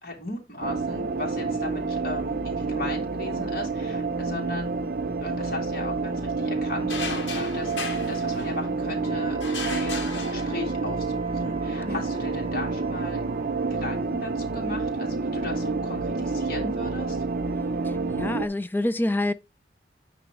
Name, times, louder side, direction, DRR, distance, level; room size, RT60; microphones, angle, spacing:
voice 1, 0.0-4.7 5.2-7.7 8.0-13.2 13.7-17.2, left 2 dB, 50° left, 2.3 m, -37 dB
sound 1, 0.6-18.5, right 3 dB, 50° right, 0.6 m, -28 dB
sound 2, 6.9-8.9 9.4-11.0, left 3 dB, 85° left, 1.8 m, -35 dB
Wind instrument woodwind instrument, 9.0-13.8, right 2 dB, 35° left, 2.2 m, -45 dB
voice 2, 17.8-19.3, left 1 dB, 10° left, 0.4 m, -27 dB
9.1 x 3.1 x 4.7 m
head